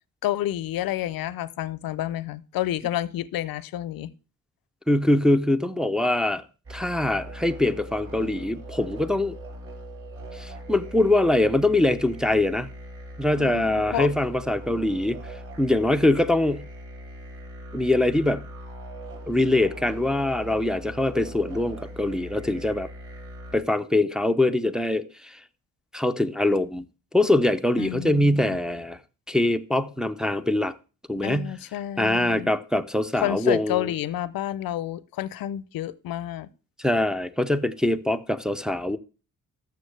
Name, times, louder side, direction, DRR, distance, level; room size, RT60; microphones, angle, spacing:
voice 1, 0.2-4.1 13.4-14.1 27.8-28.6 31.2-32.5 33.2-36.5, left 13 dB, 80° left, 0.6 m, -30 dB
voice 2, 4.9-6.4 6.7-9.4 10.3-12.7 13.2-16.6 17.7-18.4 19.3-22.9 23.5-25.4 25.9-26.8 27.1-29.0 29.3-30.7 31.1-31.5 32.0-33.9 36.8-39.0, left 1 dB, ahead, 0.4 m, -23 dB
sound 1, 6.6-23.6, right 1 dB, 45° right, 5.8 m, -40 dB
13.0 x 6.9 x 3.3 m
cardioid pair, 130°, 34 cm